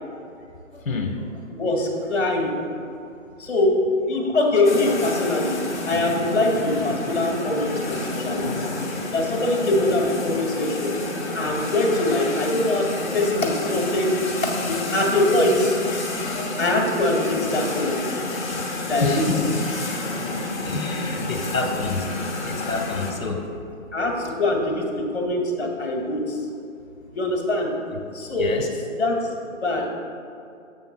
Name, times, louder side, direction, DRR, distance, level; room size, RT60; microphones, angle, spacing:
voice 1, 1.5-2.5 3.4-3.8 4.1-5.6 5.9-8.7 9.1-10.9 11.3-12.9 13.1-14.1 14.4-15.7 16.6-18.2 18.9-19.2 23.9-24.9 25.1-26.4 27.1-27.7 28.1-28.7 29.0-29.2 29.6-29.9, left 2 dB, 55° left, 0 dB, 2.1 m, -23 dB
sound 1, 4.6-23.1, left 2 dB, 35° left, 1.2 m, -29 dB
voice 2, 19.0-19.4 20.1-22.1 22.4-23.4 28.4-28.7, left 3 dB, 75° left, 3 dB, 1.2 m, -28 dB
12.5 x 7.8 x 2.3 m, 2.5 s
figure-of-eight pair, 155°, 40 cm